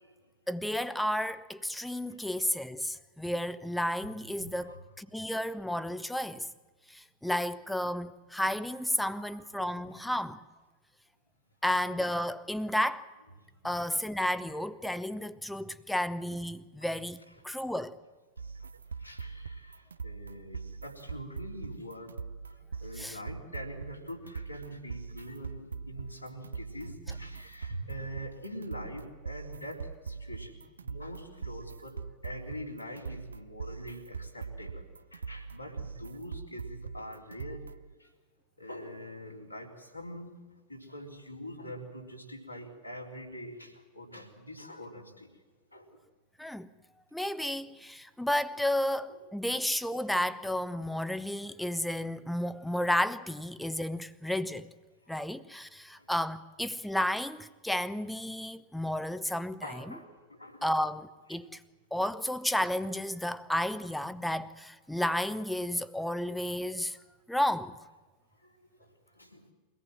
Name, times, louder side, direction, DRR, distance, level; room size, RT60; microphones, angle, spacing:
voice 1, 0.5-6.5 6.9-10.4 11.6-13.1 13.6-18.0 23.0-23.2 46.4-46.7 47.1-54.7 55.1-59.8 60.6-61.6 61.9-67.0 67.3-67.7, left 1 dB, 5° left, 0.9 m, -32 dB
voice 2, 2.1-2.5 4.4-4.8 9.1-9.8 11.7-11.8 13.6-13.7 17.4-17.5 18.6-18.7 19.0-22.2 22.4-34.9 35.1-37.6 38.0-38.1 38.6-40.3 40.7-45.3 45.7-46.0 49.1-49.2 52.7-52.9 56.0-56.1 59.6-60.8 64.2-64.3 66.9-67.0 68.4-69.4, equal, 90° left, 3.8 m, -44 dB
sound 1, 18.4-37.9, right 5 dB, 75° right, 0.6 m, -42 dB
24.0 x 18.0 x 7.6 m
figure-of-eight pair, 90°, 0 cm